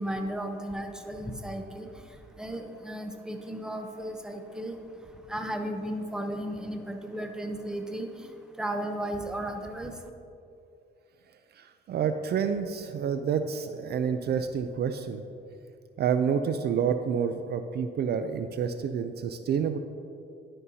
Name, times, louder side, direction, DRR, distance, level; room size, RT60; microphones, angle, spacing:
voice 1, 0.0-1.9 2.4-4.8 5.3-8.1 8.6-9.9, right 1 dB, 5° right, 4 dB, 0.7 m, -34 dB
voice 2, 11.6-15.2 16.0-19.8, right 7 dB, 55° right, 9 dB, 0.4 m, -28 dB
11.0 x 5.4 x 2.7 m, 2.5 s
cardioid pair, 90°, 20 cm